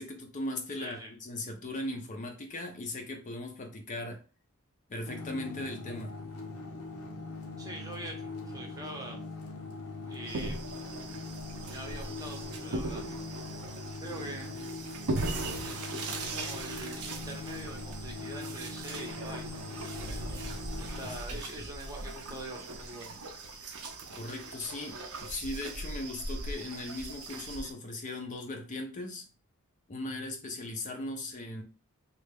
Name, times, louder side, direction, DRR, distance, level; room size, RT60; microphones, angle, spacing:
voice 1, 0.0-4.2 4.9-6.1 21.3-21.7 24.1-29.2 29.9-31.6, left 2 dB, 35° left, 4 dB, 0.5 m, -38 dB
voice 2, 0.8-1.1 7.6-9.2 10.1-10.7 11.7-13.1 14.0-14.5 15.6-15.8 16.2-20.5 20.8-23.2, right 1 dB, 15° right, 1 dB, 0.7 m, -44 dB
sound 1, 5.1-21.2, left 3 dB, 80° left, 0.7 m, -42 dB
sound 2, 10.3-27.7, right 2 dB, 70° right, 0.6 m, -39 dB
3.2 x 2.3 x 3.4 m, 0.35 s
head